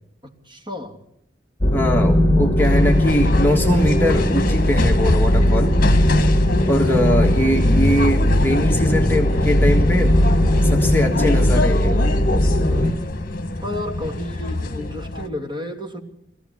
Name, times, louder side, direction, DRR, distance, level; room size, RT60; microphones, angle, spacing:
voice 1, 0.2-1.0 13.6-16.0, left 1 dB, 25° right, 2.9 m, -32 dB
sound 1, 1.6-12.9, left 1 dB, 25° left, 1.8 m, -18 dB
voice 2, 1.7-5.8 6.7-10.2 10.6-12.1, equal, 10° left, 1.6 m, -22 dB
sound 2, 2.6-15.3, left 2 dB, 50° left, 1.4 m, -25 dB
22.5 x 15.5 x 9.7 m
head